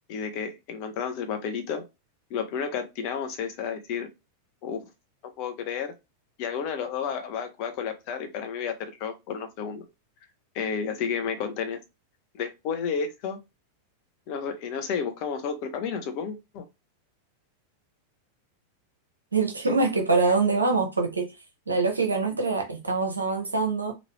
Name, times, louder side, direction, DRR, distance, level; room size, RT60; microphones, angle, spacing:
voice 1, 0.1-1.8 2.3-4.1 4.6-4.9 5.4-5.9 6.4-9.9 10.5-11.8 12.3-13.4 14.3-16.6, left 6 dB, 45° left, 0.8 m, -31 dB
voice 2, 19.3-21.3 21.7-23.9, right 4 dB, 80° right, 0.8 m, -24 dB
3.1 x 2.5 x 3.1 m
figure-of-eight pair, 90°, 0 cm